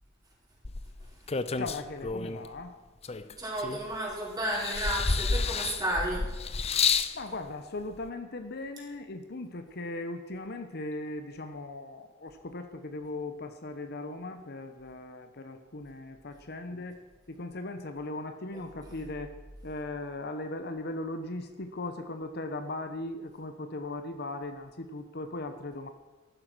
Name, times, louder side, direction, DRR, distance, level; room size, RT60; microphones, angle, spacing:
sound 1, 0.6-2.5 3.0-4.1 4.5-7.2 8.1-8.2, left 5 dB, 30° left, 0.6 m, -30 dB
voice 1, 1.6-2.8 7.1-17.0 17.3-19.3 19.6-25.9, left 2 dB, 55° left, 7 dB, 1.0 m, -38 dB
voice 2, 3.4-6.9 18.5-18.6 18.9-19.0, right 1 dB, 20° right, -5 dB, 4.9 m, -33 dB
14.5 x 11.5 x 6.2 m, 1.3 s
head